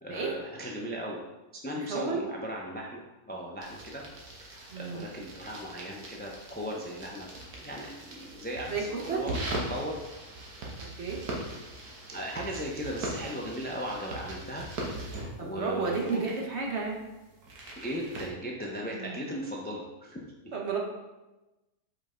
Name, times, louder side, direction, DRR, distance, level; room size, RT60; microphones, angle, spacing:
voice 1, 0.0-1.2 1.6-4.0 4.3-7.3 7.6-10.0 12.1-16.2 17.8-20.2, equal, 15° left, -2 dB, 0.3 m, -37 dB
voice 2, 1.7-2.2 4.7-5.1 8.7-9.2 11.0-11.2 15.4-17.0 18.9-19.1 20.5-20.8, right 4 dB, 50° right, -1 dB, 1.1 m, -32 dB
sound 1, 3.6-18.3, right 1 dB, 80° right, 1.7 m, -41 dB
5.4 x 4.8 x 3.7 m, 1.1 s
omnidirectional pair, 1.6 m